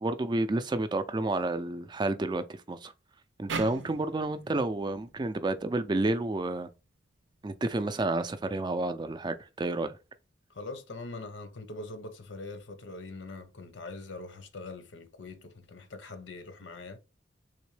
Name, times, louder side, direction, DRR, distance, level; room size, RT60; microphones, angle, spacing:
voice 1, 0.0-2.9 3.4-6.7 7.4-10.0, right 2 dB, 25° right, 0.3 m, -30 dB
sound 1, 3.5-6.7, right 5 dB, 85° right, 0.6 m, -41 dB
voice 2, 10.5-17.0, left 2 dB, 85° left, 0.8 m, -43 dB
3.6 x 2.9 x 3.2 m
head